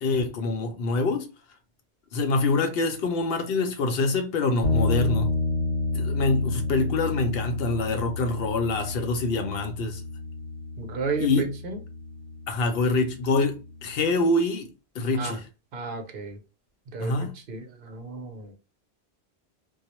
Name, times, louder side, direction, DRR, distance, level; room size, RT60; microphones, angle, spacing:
voice 1, 0.0-1.3 2.1-5.3 5.9-10.0 11.2-11.5 12.5-14.7 15.0-15.5 17.0-17.3, left 3 dB, 70° left, 0.7 m, -25 dB
sound 1, 4.6-14.1, left 2 dB, 85° left, 1.0 m, -30 dB
voice 2, 10.8-11.8 15.1-15.4 15.7-16.4 16.9-17.1 17.5-18.5, right 4 dB, 60° right, 0.7 m, -33 dB
2.3 x 2.0 x 2.8 m
omnidirectional pair, 1.1 m